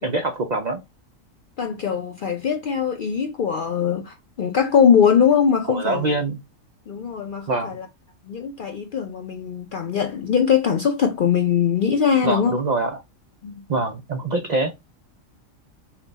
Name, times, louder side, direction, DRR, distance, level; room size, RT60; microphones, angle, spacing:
voice 1, 0.0-0.8 5.7-6.4 7.5-7.8 12.2-13.0 13.7-14.7, right 2 dB, 75° right, 0.4 m, -24 dB
voice 2, 1.6-6.2 6.9-7.9 8.3-12.6 13.4-13.5, left 7 dB, 65° left, 0.5 m, -21 dB
5.7 x 2.2 x 3.9 m
omnidirectional pair, 1.4 m